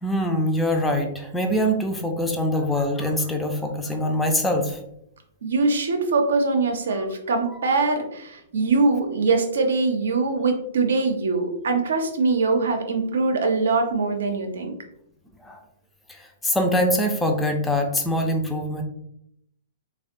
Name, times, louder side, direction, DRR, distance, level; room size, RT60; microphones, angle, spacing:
voice 1, 0.0-4.8 7.0-7.1 7.5-7.7 15.4-15.6 16.1-18.8, equal, 5° left, 2 dB, 0.4 m, -24 dB
voice 2, 5.4-14.7, right 3 dB, 65° right, 5 dB, 0.6 m, -22 dB
3.5 x 2.2 x 2.5 m, 0.76 s
figure-of-eight pair, 110°, 0 cm